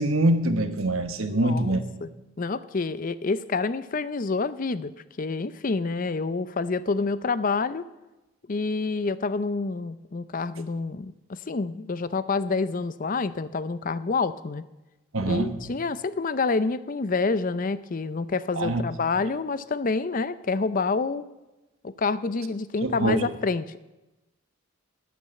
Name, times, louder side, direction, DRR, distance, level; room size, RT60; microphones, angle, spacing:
voice 1, 0.0-1.9 15.1-15.6 18.5-18.8 22.8-23.2, right 1 dB, 70° right, 7 dB, 1.2 m, -24 dB
voice 2, 1.3-2.1 2.4-4.9 5.2-7.8 8.5-14.6 15.3-21.2 21.8-23.8, left 4 dB, 40° left, 15 dB, 0.5 m, -28 dB
13.0 x 9.4 x 7.6 m, 1.0 s
head